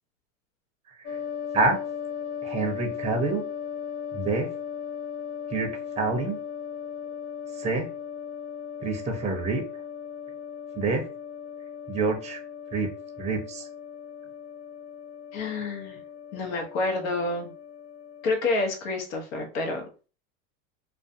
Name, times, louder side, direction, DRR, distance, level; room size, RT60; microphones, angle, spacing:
voice 1, 0.9-1.2 1.5-1.8 2.4-3.4 4.1-4.5 5.5-6.4 7.6-7.9 8.8-9.6 10.8-11.1 11.9-12.4 12.7-12.9 13.2-13.7, right 3 dB, 15° right, 4 dB, 0.5 m, -27 dB
sound 1, 1.0-18.3, left 8 dB, 60° left, 0.6 m, -37 dB
voice 2, 15.3-16.0 16.3-17.5 18.2-20.1, left 3 dB, 80° left, 3 dB, 1.0 m, -29 dB
2.5 x 2.2 x 2.5 m, 0.35 s
hypercardioid pair, 110°, 40 cm